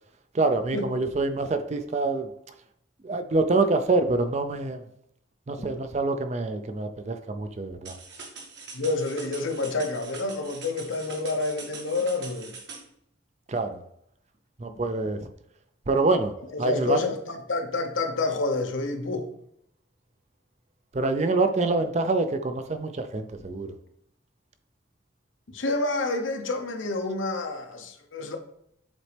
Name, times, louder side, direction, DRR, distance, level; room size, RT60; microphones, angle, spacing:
voice 1, 0.3-2.3 3.0-4.8 5.5-7.9 13.5-13.8 14.6-15.3 15.9-16.3 16.6-17.0 20.9-23.7, right 3 dB, 35° right, 0.4 m, -26 dB
sound 1, 7.8-12.8, right 4 dB, 60° right, 1.4 m, -43 dB
voice 2, 8.7-12.6 14.7-14.8 16.5-19.3 25.5-28.4, left 3 dB, 80° left, 0.9 m, -28 dB
7.3 x 4.1 x 3.3 m
head